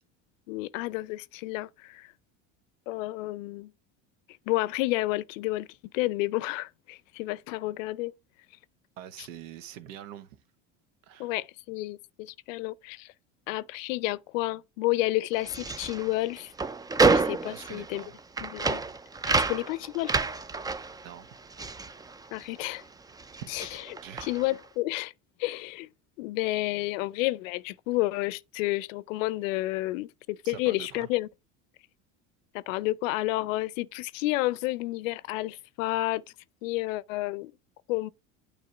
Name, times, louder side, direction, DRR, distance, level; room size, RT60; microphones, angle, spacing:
voice 1, 0.5-2.1 2.9-3.7 4.5-5.7 5.9-8.1 11.2-13.1 13.5-16.5 17.0-18.0 18.4-18.8 19.4-20.2 22.3-22.8 23.5-23.7 24.2-25.1 25.4-25.9 26.2-31.3 32.5-36.2 36.6-37.5 37.9-38.1, left 19 dB, 80° left, 0.6 m, -30 dB
voice 2, 9.0-10.4 11.0-11.3 17.5-18.2 21.0-21.3 23.4-23.5 24.0-24.3 30.4-31.1, right 10 dB, 80° right, 0.9 m, -44 dB
sound 1, 15.3-22.8 23.1-24.6, right 4 dB, 10° right, 0.4 m, -29 dB
9.1 x 3.1 x 4.9 m
hypercardioid pair, 85°, 38 cm